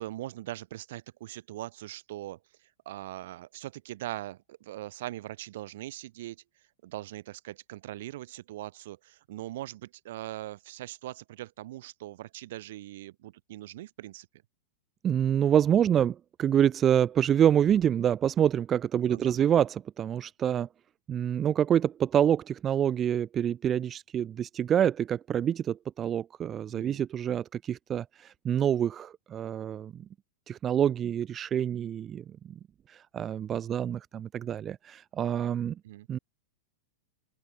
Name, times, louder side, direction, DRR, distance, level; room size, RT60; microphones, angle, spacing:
voice 1, 0.0-2.4 2.9-6.4 6.8-14.3 19.0-19.4 26.7-27.0 35.8-36.1, right 15 dB, 60° right, 2.4 m, -41 dB
voice 2, 15.0-20.7 21.1-30.0 30.5-32.2 32.9-35.8 36.1-36.2, right 9 dB, 20° right, 0.5 m, -26 dB
open air
supercardioid pair, 160°, 0 cm